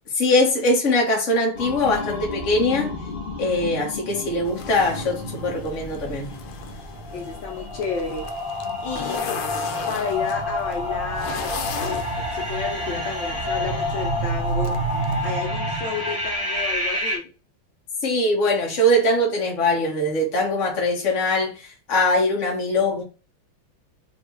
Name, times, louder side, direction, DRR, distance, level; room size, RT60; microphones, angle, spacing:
voice 1, 0.2-2.9 3.4-6.4 18.0-23.0, left 1 dB, 40° left, 1.4 m, -22 dB
sound 1, 1.5-17.2, equal, 25° left, 2.2 m, -29 dB
sound 2, 4.4-15.3, left 8 dB, 90° left, 1.5 m, -38 dB
voice 2, 7.1-8.3 8.8-9.2 9.9-12.0 12.3-14.8 15.2-17.3, left 5 dB, 70° left, 1.4 m, -31 dB
3.7 x 3.6 x 3.4 m
omnidirectional pair, 2.2 m